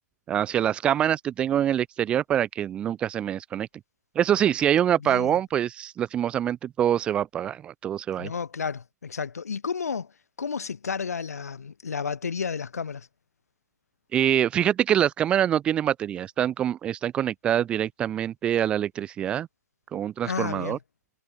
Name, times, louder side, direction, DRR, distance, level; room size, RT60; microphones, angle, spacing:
voice 1, 0.3-3.7 4.1-8.3 14.1-19.5 19.9-20.8, right 10 dB, 10° right, 1.3 m, -25 dB
voice 2, 5.0-5.4 8.2-10.1 10.4-13.1 20.2-20.8, left 6 dB, 60° left, 3.8 m, -32 dB
figure-of-eight pair, 145°, 10 cm